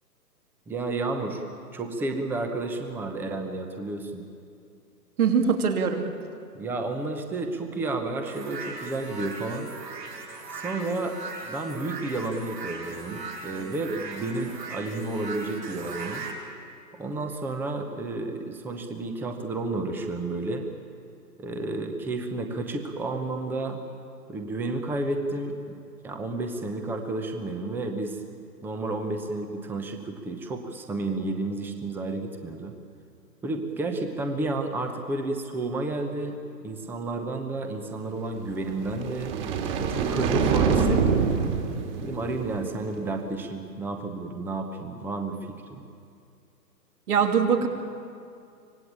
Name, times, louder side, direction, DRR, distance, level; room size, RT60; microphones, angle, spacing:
voice 1, 0.7-1.4 1.7-4.3 6.5-9.7 10.5-11.2 11.5-16.3 16.9-20.7 21.4-23.8 24.3-25.5 26.0-28.2 28.6-32.7 33.4-39.4 39.8-41.3 42.0-45.8, right 2 dB, 5° right, 5 dB, 0.9 m, -31 dB
voice 2, 5.2-6.0 47.1-47.7, right 6 dB, 60° right, 4 dB, 3.1 m, -22 dB
sound 1, 8.3-16.3, right 3 dB, 80° right, 6.4 m, -38 dB
sound 2, 38.6-42.9, right 5 dB, 35° right, 2.7 m, -25 dB
25.0 x 19.0 x 8.7 m, 2.4 s
hypercardioid pair, 140°, 50 cm